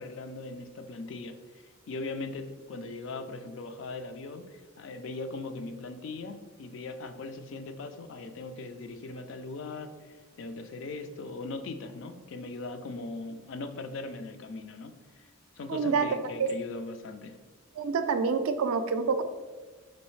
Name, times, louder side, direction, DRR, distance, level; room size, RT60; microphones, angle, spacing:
voice 1, 0.0-15.3 15.6-17.4, left 3 dB, 60° left, 8 dB, 0.3 m, -40 dB
voice 2, 15.7-16.1 16.4-16.5 17.8-19.2, right 5 dB, 80° right, 9 dB, 0.4 m, -27 dB
4.1 x 3.0 x 3.1 m, 1.3 s
head